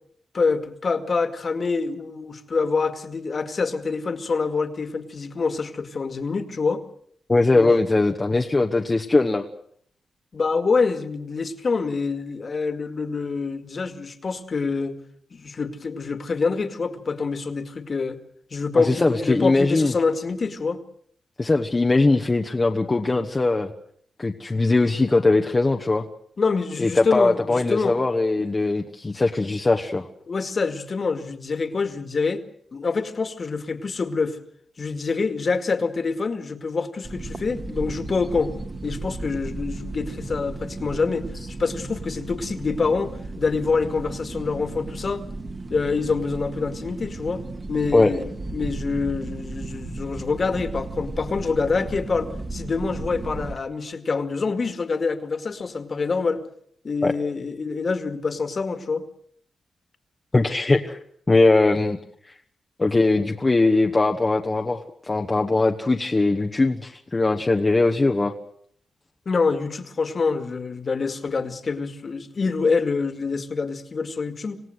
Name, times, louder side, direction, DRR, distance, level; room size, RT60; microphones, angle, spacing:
voice 1, 0.3-6.8 7.5-7.7 10.3-15.0 15.3-18.2 18.5-20.8 26.4-28.0 30.3-32.4 32.7-34.4 34.8-38.6 38.8-41.3 41.6-45.2 45.7-47.4 47.7-48.2 48.5-56.4 56.8-59.0 69.3-74.6, left 4 dB, 40° left, 9 dB, 2.2 m, -26 dB
voice 2, 7.3-9.5 18.7-19.9 21.4-23.7 24.2-26.0 26.8-30.1 47.9-48.1 57.0-57.1 60.3-61.0 61.3-62.0 62.2-62.4 62.8-68.3, left 2 dB, 25° left, 3 dB, 1.2 m, -20 dB
sound 1, 37.0-53.6, right 2 dB, 30° right, 2.0 m, -35 dB
27.0 x 17.0 x 8.0 m, 0.64 s
wide cardioid pair, 125°, 0 cm